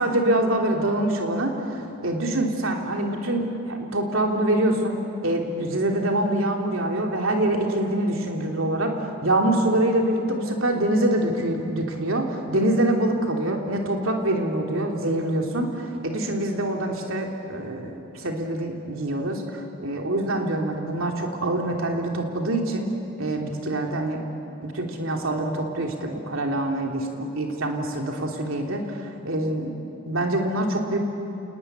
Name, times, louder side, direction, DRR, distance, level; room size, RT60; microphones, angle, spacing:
voice 1, 0.0-4.9 5.2-8.9 9.2-22.9 23.2-24.2 24.6-29.7 30.0-31.0, right 1 dB, 70° right, 2 dB, 3.2 m, -25 dB
29.5 x 19.5 x 9.6 m, 2.8 s
head